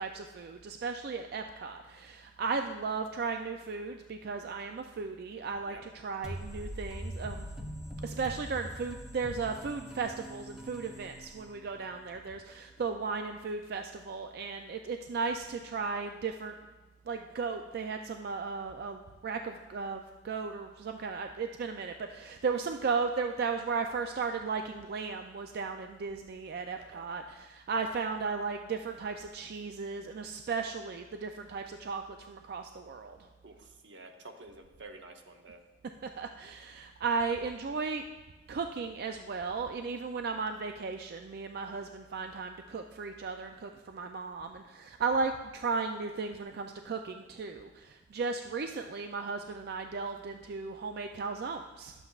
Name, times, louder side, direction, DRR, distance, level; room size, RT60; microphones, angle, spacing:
voice 1, 0.0-7.7 8.0-16.6 17.1-33.2 36.0-38.0 38.5-51.9, right 4 dB, 60° right, 6 dB, 0.4 m, -35 dB
sound 1, 6.2-11.9, equal, 5° right, 1.0 m, -42 dB
voice 2, 26.8-27.1 33.4-35.6, right 2 dB, 90° right, 4 dB, 0.9 m, -50 dB
11.0 x 7.8 x 2.4 m, 1.2 s
head